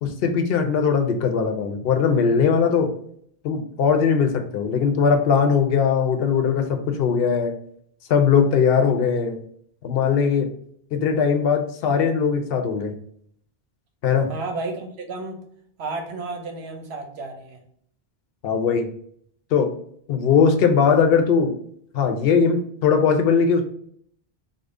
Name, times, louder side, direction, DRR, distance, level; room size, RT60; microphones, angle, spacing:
voice 1, 0.0-2.9 3.4-7.5 8.1-9.4 9.8-10.5 10.9-12.9 14.0-14.3 18.4-18.9 19.5-19.7 20.1-21.5 21.9-23.6, left 6 dB, 70° left, 5 dB, 0.7 m, -20 dB
voice 2, 14.3-15.4 15.8-17.6, right 3 dB, 80° right, 4 dB, 1.0 m, -32 dB
3.6 x 2.0 x 3.5 m, 0.65 s
omnidirectional pair, 1.0 m